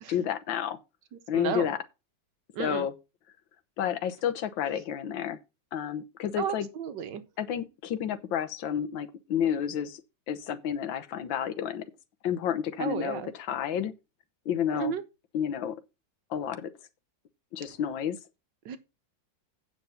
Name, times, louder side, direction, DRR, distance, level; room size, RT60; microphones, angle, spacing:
voice 1, 0.1-0.8 1.3-1.8 2.6-2.9 3.8-5.4 5.7-6.7 7.4-10.0 10.3-11.8 12.2-13.9 14.4-15.0 15.3-15.8 16.3-16.7 17.5-18.2, left 9 dB, 85° left, 1.7 m, -30 dB
voice 2, 1.1-1.7 2.5-2.9 6.4-7.2 12.8-13.3 14.7-15.0 18.6-18.8, right 8 dB, 75° right, 1.5 m, -33 dB
8.8 x 5.9 x 5.7 m
omnidirectional pair, 2.0 m